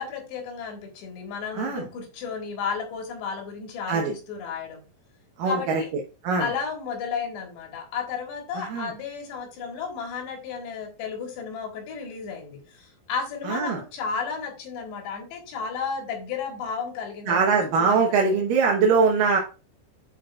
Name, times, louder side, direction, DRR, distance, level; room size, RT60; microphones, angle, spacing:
voice 1, 0.0-4.8 5.5-5.9 6.4-18.4, left 6 dB, 70° left, 3 dB, 3.5 m, -33 dB
voice 2, 1.5-1.9 3.9-4.1 5.4-5.8 6.2-6.5 8.6-8.9 13.4-13.8 17.3-19.4, right 5 dB, 85° right, 0 dB, 1.9 m, -22 dB
11.0 x 5.2 x 2.4 m, 0.32 s
omnidirectional pair, 5.3 m